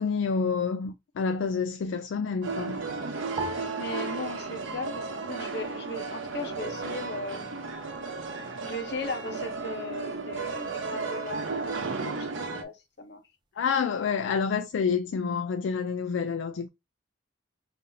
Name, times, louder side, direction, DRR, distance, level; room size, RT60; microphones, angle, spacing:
voice 1, 0.0-2.8 13.6-16.7, left 5 dB, 75° left, 0.3 m, -28 dB
sound 1, 2.4-12.6, right 4 dB, 80° right, 0.8 m, -34 dB
sound 2, 3.4-5.9 6.2-7.1 7.7-8.1, right 4 dB, 25° right, 0.4 m, -43 dB
voice 2, 3.8-7.6 8.6-13.2, left 2 dB, 55° left, 0.8 m, -37 dB
5.5 x 2.6 x 2.6 m
head